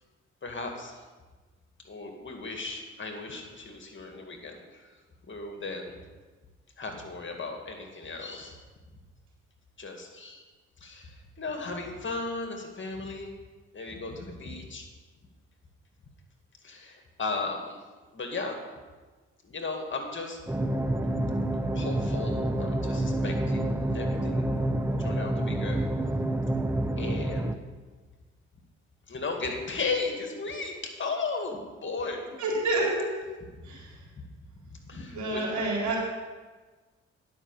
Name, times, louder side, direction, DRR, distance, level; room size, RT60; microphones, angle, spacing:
voice 1, 0.4-1.0 1.8-4.9 5.3-6.0 6.8-8.6 9.8-10.4 10.8-13.3 13.7-14.9 16.6-17.8 18.1-18.6 19.4-20.4 21.7-24.7 25.0-25.9 26.6-27.6 29.1-32.3 33.6-33.8 34.2-34.3 34.7-35.4, left 3 dB, 40° left, 3 dB, 2.2 m, -36 dB
sound 1, 20.5-27.6, right 1 dB, 10° right, 0.7 m, -28 dB
voice 2, 32.4-33.1 33.6-34.0 35.1-36.0, right 2 dB, 75° right, -3 dB, 3.9 m, -28 dB
11.0 x 6.0 x 7.2 m, 1.3 s
supercardioid pair, 55°, 29 cm